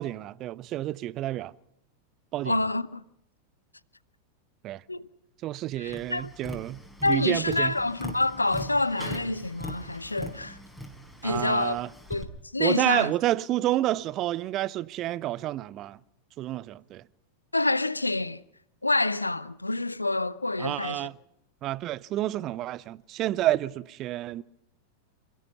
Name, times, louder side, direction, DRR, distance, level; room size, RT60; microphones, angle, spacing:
voice 1, 0.0-1.5 2.3-2.6 4.6-4.8 5.4-7.7 11.2-11.9 12.6-16.0 16.4-17.0 20.6-21.1 21.6-24.4, right 14 dB, 35° right, 0.7 m, -29 dB
voice 2, 2.5-3.0 4.9-5.1 5.8-6.3 7.0-10.6 11.2-11.8 12.1-12.3 12.5-13.1 17.5-18.4 18.8-21.0, left 2 dB, 85° left, 0.7 m, -27 dB
Tap, 5.8-12.2, equal, ahead, 4.9 m, -41 dB
27.5 x 17.5 x 5.7 m
figure-of-eight pair, 90°, 0 cm